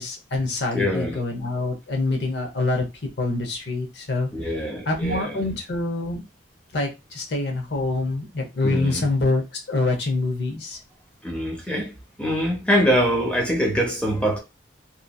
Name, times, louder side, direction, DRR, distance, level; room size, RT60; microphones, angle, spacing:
voice 1, 0.0-2.9 3.2-4.3 4.9-6.2 6.7-10.8, left 2 dB, 60° left, 0.8 m, -25 dB
voice 2, 0.7-1.2 4.3-5.4 8.6-9.1 11.2-14.4, equal, 5° left, 0.7 m, -24 dB
3.0 x 2.6 x 2.3 m
head